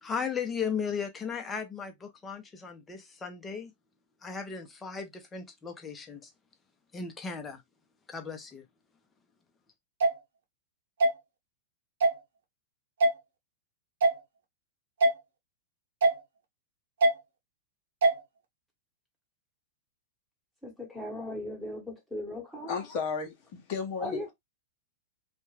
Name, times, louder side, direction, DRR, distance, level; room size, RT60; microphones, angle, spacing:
voice 1, 0.0-3.7 4.2-6.3 6.9-7.6 8.1-8.6, left 6 dB, 20° left, 0.7 m, -36 dB
sound 1, 10.0-10.1 11.0-11.1 12.0-12.2 13.0-13.1 14.0-14.2 15.0-15.1 16.0-16.2 17.0-17.1 18.0-18.2, right 2 dB, 75° right, 1.0 m, -22 dB
voice 2, 20.6-22.7 24.0-24.3, left 1 dB, ahead, 1.2 m, -37 dB
voice 3, 22.7-24.2, left 5 dB, 50° left, 0.8 m, -33 dB
2.5 x 2.2 x 3.1 m
hypercardioid pair, 115°, 0 cm